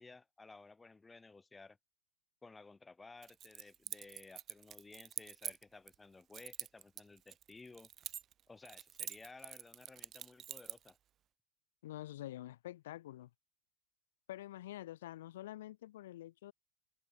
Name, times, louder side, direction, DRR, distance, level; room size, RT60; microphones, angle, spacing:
voice 1, 0.0-1.8 2.4-7.9 8.5-11.0, left 3 dB, 10° left, 5.1 m, -56 dB
Keys jangling, 3.2-6.0 6.3-8.4 8.7-10.9, right 10 dB, 25° right, 1.6 m, -46 dB
voice 2, 11.8-13.3 14.3-16.5, left 14 dB, 85° left, 0.7 m, -47 dB
supercardioid pair, 155°, 0 cm